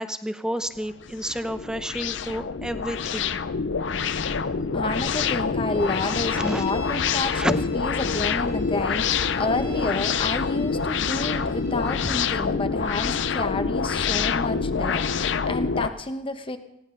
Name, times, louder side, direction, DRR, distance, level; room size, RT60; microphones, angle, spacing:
voice 1, 0.0-3.3 6.4-6.7 7.3-7.6, equal, 5° right, 10 dB, 0.7 m, -30 dB
sound 1, 0.8-15.9, left 5 dB, 65° left, 0.6 m, -26 dB
voice 2, 4.7-7.4 7.7-16.6, left 2 dB, 25° left, 8 dB, 1.0 m, -30 dB
sound 2, 5.7-12.3, left 4 dB, 85° left, 5.5 m, -45 dB
19.5 x 16.0 x 3.9 m, 0.78 s
head